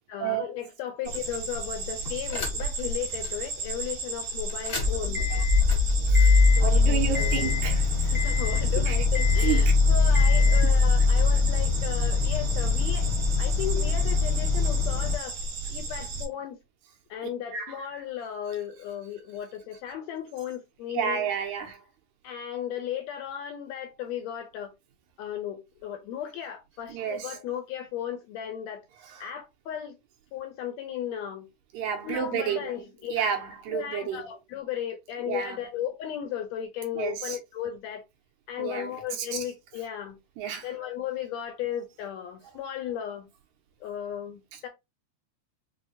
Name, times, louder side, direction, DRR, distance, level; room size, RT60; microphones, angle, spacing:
voice 1, 0.1-5.3 6.6-6.8 7.2-7.5 8.1-15.4 15.7-16.6 17.1-21.4 22.2-24.7 25.2-28.8 29.2-29.9 30.3-31.5 32.0-33.3 33.7-38.0 38.5-40.2 40.6-43.3 43.8-44.7, left 10 dB, 80° left, 1.6 m, -35 dB
sound 1, 1.0-16.3, right 3 dB, 55° right, 1.7 m, -35 dB
sound 2, 2.3-2.8 3.2-3.3 4.5-15.1, left 4 dB, 65° left, 0.8 m, -22 dB
voice 2, 6.1-8.0 8.9-9.0 9.4-9.8 10.6-10.8 17.5-17.8 18.5-18.6 20.9-21.8 26.9-27.4 29.0-29.3 31.7-32.7 33.1-34.2 35.3-35.6 36.9-37.4 38.6-39.4 40.4-40.7 44.5-44.7, right 8 dB, 80° right, 2.3 m, -31 dB
6.0 x 2.0 x 2.6 m
omnidirectional pair, 3.5 m